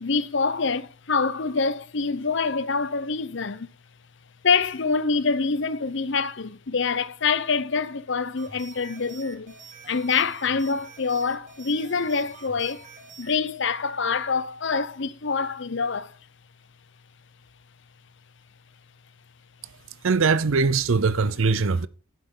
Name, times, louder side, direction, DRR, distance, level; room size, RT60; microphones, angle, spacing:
voice 1, 0.0-3.7 4.4-9.5 9.9-12.8 13.2-16.2, left 5 dB, 60° left, 0.7 m, -25 dB
sound 1, 8.4-13.4, right 4 dB, 35° right, 1.7 m, -47 dB
voice 2, 20.0-21.9, right 4 dB, 70° right, 0.6 m, -21 dB
10.5 x 10.0 x 3.8 m
head